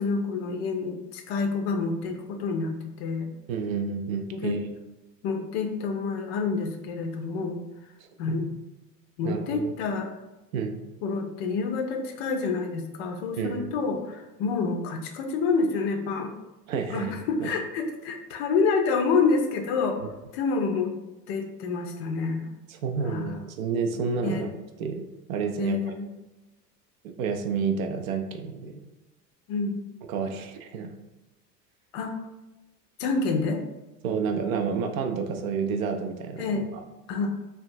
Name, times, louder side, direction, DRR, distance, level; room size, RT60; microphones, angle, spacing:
voice 1, 0.0-3.3 4.3-4.6 5.2-7.6 8.2-8.5 9.2-10.1 11.0-16.3 16.9-20.0 20.3-20.9 21.3-22.5 23.0-23.4 24.2-24.5 25.6-26.1 29.5-29.9 31.9-32.2 33.0-33.7 36.4-36.7 37.1-37.4, left 4 dB, 40° left, 4 dB, 0.5 m, -28 dB
voice 2, 3.5-4.6 8.3-8.4 9.2-9.7 10.5-10.7 13.4-13.7 16.7-17.5 22.7-24.5 24.8-25.0 25.3-25.8 27.0-28.8 30.1-30.9 34.0-36.8, right 5 dB, 55° right, 4 dB, 0.5 m, -30 dB
3.5 x 2.3 x 2.5 m, 1.0 s
figure-of-eight pair, 85°, 49 cm